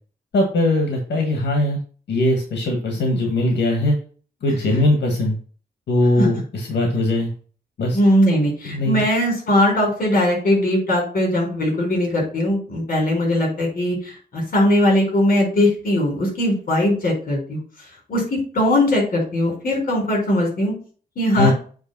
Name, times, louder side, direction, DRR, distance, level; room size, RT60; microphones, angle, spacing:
voice 1, 0.3-1.8 2.1-3.9 4.4-5.4 5.9-7.3 7.8-8.0 8.6-9.0 21.3-21.5, left 1 dB, 90° left, 2 dB, 1.6 m, -20 dB
voice 2, 7.9-17.6 18.1-20.7 21.2-21.5, left 1 dB, 55° left, -1 dB, 4.4 m, -20 dB
8.0 x 3.4 x 6.0 m, 0.41 s
wide cardioid pair, 180°, 17 cm